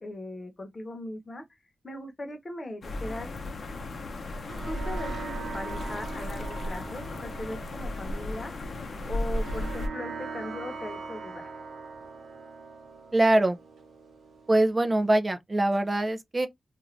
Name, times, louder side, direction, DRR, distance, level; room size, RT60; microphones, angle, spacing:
voice 1, 0.0-1.5 1.8-3.3 4.6-8.7 9.1-11.5, left 1 dB, 30° left, 0.9 m, -39 dB
sound 1, 2.8-9.9, left 1 dB, 55° left, 0.7 m, -35 dB
sound 2, 4.2-15.1, right 4 dB, 80° right, 0.9 m, -42 dB
voice 2, 13.1-13.6 14.5-16.5, right 1 dB, 25° right, 0.4 m, -23 dB
2.5 x 2.4 x 3.2 m
wide cardioid pair, 115°, 0 cm